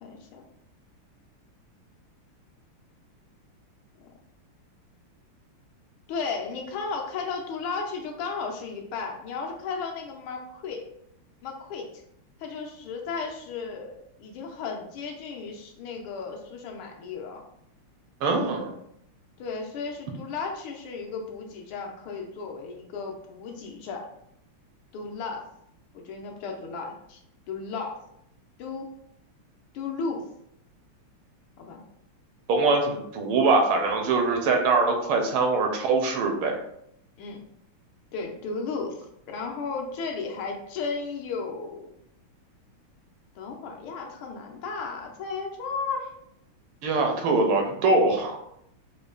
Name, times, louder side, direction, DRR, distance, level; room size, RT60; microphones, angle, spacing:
voice 1, 0.0-0.5 4.0-4.1 6.1-10.9 11.4-11.9 12.4-17.4 19.4-24.1 24.9-25.4 25.9-27.2 27.5-28.0 28.6-28.9 29.7-30.2 31.6-31.8 37.2-37.4 38.1-41.9 43.4-46.1, left 4 dB, 80° left, 1 dB, 1.5 m, -34 dB
voice 2, 18.2-18.7 32.5-36.6 46.8-48.4, right 3 dB, 80° right, 3 dB, 1.5 m, -23 dB
4.9 x 2.2 x 2.4 m, 0.73 s
omnidirectional pair, 2.4 m